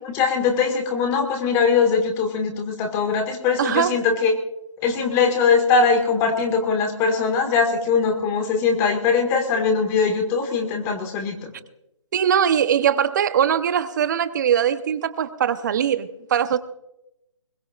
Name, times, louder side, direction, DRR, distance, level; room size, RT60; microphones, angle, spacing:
voice 1, 0.0-4.4 4.8-11.5, left 5 dB, 15° left, 1.8 m, -21 dB
voice 2, 3.6-4.0 12.1-16.6, right 9 dB, 35° right, 0.9 m, -21 dB
22.0 x 20.5 x 2.5 m
figure-of-eight pair, 155°, 16 cm